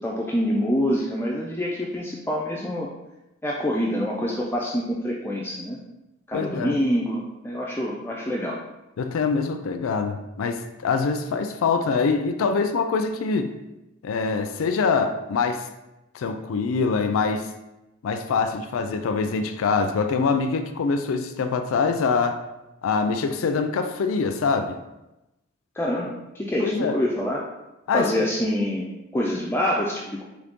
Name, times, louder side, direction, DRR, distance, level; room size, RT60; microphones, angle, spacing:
voice 1, 0.0-2.9 3.4-5.8 6.3-8.6 25.8-27.4 27.9-30.3, equal, 10° left, -3 dB, 0.4 m, -26 dB
voice 2, 6.3-6.8 9.0-13.5 14.0-15.7 16.1-17.5 18.0-22.4 22.8-24.8 26.6-27.0 27.9-28.3, left 4 dB, 80° left, 7 dB, 0.4 m, -24 dB
3.8 x 3.1 x 3.5 m, 0.97 s
head